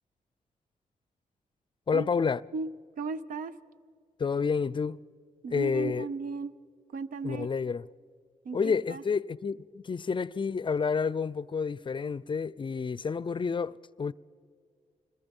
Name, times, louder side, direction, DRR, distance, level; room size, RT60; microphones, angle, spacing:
voice 1, 1.9-2.4 4.2-5.0 5.5-6.1 7.2-7.8 8.5-14.1, left 5 dB, 35° left, 0.4 m, -29 dB
voice 2, 2.5-3.5 5.4-6.5 6.9-7.5 8.4-9.0, right 4 dB, 85° right, 0.8 m, -36 dB
26.0 x 21.5 x 5.4 m
cardioid pair, 80°, 14 cm